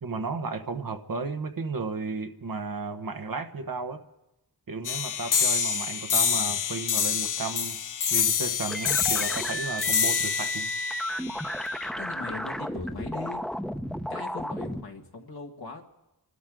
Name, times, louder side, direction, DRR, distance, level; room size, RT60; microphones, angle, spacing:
voice 1, 0.0-4.0 4.7-7.8 8.1-10.7, right 4 dB, 65° right, 6 dB, 1.3 m, -34 dB
sound 1, 4.8-11.9, left 7 dB, 55° left, 0.7 m, -27 dB
sound 2, 8.7-14.8, equal, ahead, 0.9 m, -33 dB
voice 2, 12.0-13.4 14.1-15.8, left 4 dB, 80° left, 0 dB, 1.8 m, -39 dB
29.0 x 12.5 x 3.8 m, 0.96 s
cardioid pair, 45°, 37 cm